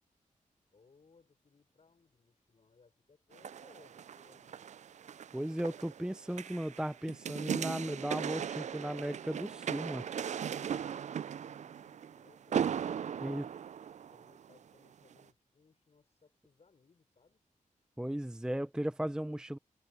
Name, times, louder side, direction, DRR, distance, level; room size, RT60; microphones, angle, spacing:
voice 1, 0.7-4.7 11.2-13.5 14.1-17.4, left 4 dB, 50° left, 6.2 m, -66 dB
sound 1, 3.3-14.6 15.1-15.2, right 8 dB, 60° right, 0.4 m, -38 dB
voice 2, 5.3-10.1 13.2-13.4 18.0-19.6, right 1 dB, 5° right, 0.5 m, -36 dB
cardioid pair, 75°, 14 cm